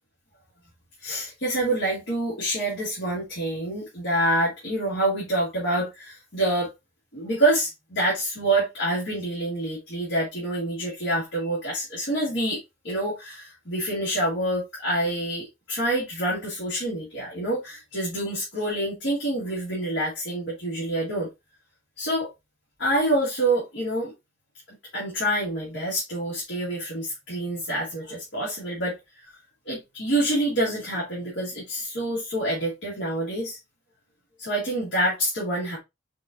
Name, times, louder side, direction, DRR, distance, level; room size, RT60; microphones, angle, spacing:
voice 1, 1.0-6.7 7.1-12.6 12.8-21.3 22.0-22.3 22.8-24.1 24.9-28.9 29.6-33.6 34.4-35.8, right 1 dB, 70° left, 1.8 m, -27 dB
5.2 x 2.5 x 2.4 m
head